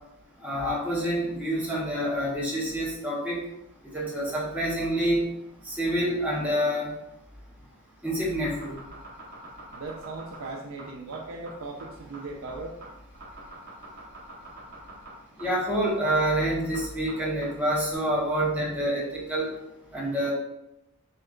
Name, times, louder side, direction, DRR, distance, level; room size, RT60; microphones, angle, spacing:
voice 1, 0.4-3.4 3.9-5.2 5.6-7.0 8.0-8.7 15.4-19.5 19.9-20.3, right 1 dB, 5° right, -5 dB, 0.9 m, -27 dB
sound 1, 8.4-17.9, right 2 dB, 45° right, 1.1 m, -45 dB
voice 2, 9.7-12.8, right 3 dB, 65° right, 0 dB, 0.4 m, -38 dB
6.4 x 2.2 x 2.5 m, 0.87 s
head